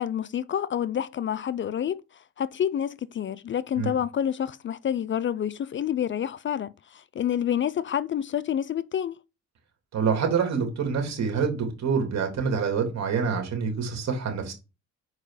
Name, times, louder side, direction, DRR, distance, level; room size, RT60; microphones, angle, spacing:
voice 1, 0.0-9.2, left 9 dB, 40° left, 0.4 m, -28 dB
voice 2, 9.9-14.5, right 6 dB, 60° right, 3.0 m, -26 dB
6.6 x 4.8 x 4.9 m
cardioid pair, 90°, 30 cm